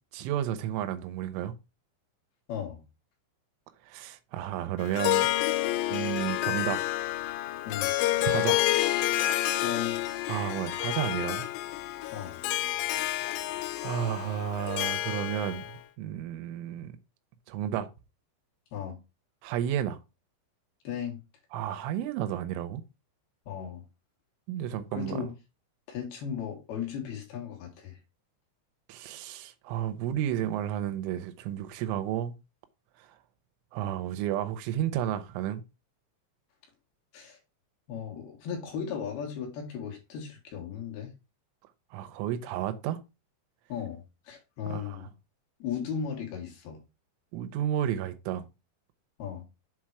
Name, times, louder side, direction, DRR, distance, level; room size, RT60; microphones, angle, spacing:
voice 1, 0.1-1.5 3.8-5.3 5.9-6.8 8.2-8.6 10.3-11.5 13.8-17.0 17.5-17.9 19.4-20.0 21.5-22.8 24.5-25.3 28.9-32.3 33.0-33.2 33.7-35.6 41.9-43.0 44.7-45.1 47.3-48.4, right 11 dB, 85° right, 3.2 m, -32 dB
voice 2, 2.5-2.8 7.6-7.9 9.6-10.0 12.1-12.4 18.7-19.0 20.8-21.2 23.5-23.8 24.9-25.3 25.9-28.0 37.1-37.4 37.9-41.1 43.7-45.1 45.6-46.8 49.2-49.4, left 8 dB, 65° left, 3.2 m, -36 dB
Harp, 4.8-15.7, left 15 dB, 85° left, 2.4 m, -29 dB
7.6 x 3.9 x 4.7 m
omnidirectional pair, 5.5 m